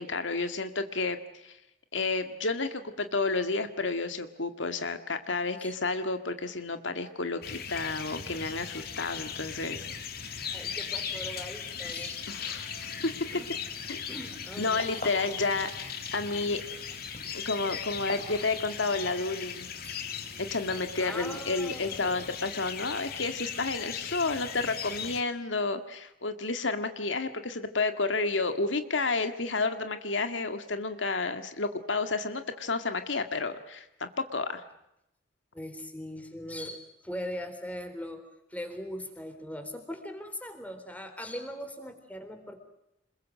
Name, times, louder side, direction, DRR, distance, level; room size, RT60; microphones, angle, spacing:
voice 1, 0.0-1.6 1.9-9.9 10.3-10.6 12.3-13.1 13.9-14.0 14.6-16.6 17.3-19.7 20.4-34.6, left 3 dB, 85° left, 8 dB, 1.9 m, -31 dB
sound 1, 7.4-25.2, left 7 dB, 55° left, 2.5 m, -38 dB
voice 2, 10.5-12.7 13.3-13.5 14.1-14.8 19.8-20.1 20.9-22.3 35.5-38.2 38.5-42.6, equal, 10° left, 7 dB, 4.0 m, -40 dB
sound 2, 13.8-14.0 14.2-15.4 15.7-16.3 16.7-19.1, left 2 dB, 40° left, 4.5 m, -45 dB
27.0 x 22.5 x 7.6 m, 0.84 s
head